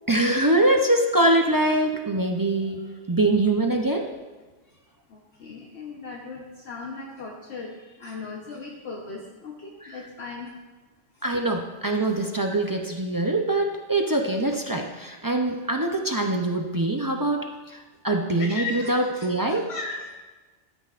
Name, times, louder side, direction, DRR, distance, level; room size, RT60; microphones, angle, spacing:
voice 1, 0.1-4.1 11.2-19.7, right 2 dB, 30° right, 2 dB, 0.4 m, -23 dB
voice 2, 5.1-10.5 18.4-20.2, left 4 dB, 65° left, -1 dB, 1.2 m, -37 dB
13.0 x 9.2 x 2.5 m, 1.2 s
omnidirectional pair, 1.2 m